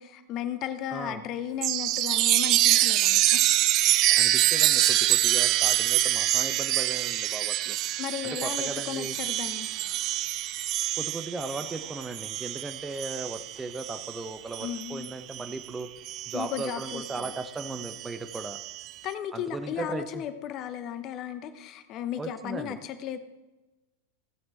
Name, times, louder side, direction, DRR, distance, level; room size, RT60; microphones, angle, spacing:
voice 1, 0.0-3.4 8.0-9.7 14.6-15.1 16.3-17.3 19.0-23.2, left 10 dB, 35° left, 11 dB, 0.9 m, -35 dB
voice 2, 0.9-1.2 4.2-7.8 8.2-9.2 11.0-15.9 16.3-18.6 19.3-20.2 22.2-22.8, right 3 dB, 10° right, 10 dB, 0.8 m, -37 dB
Chime, 1.6-15.6 16.0-18.9, right 14 dB, 40° right, 0.5 m, -26 dB
16.0 x 7.8 x 4.4 m, 1.1 s
figure-of-eight pair, 90°, 0 cm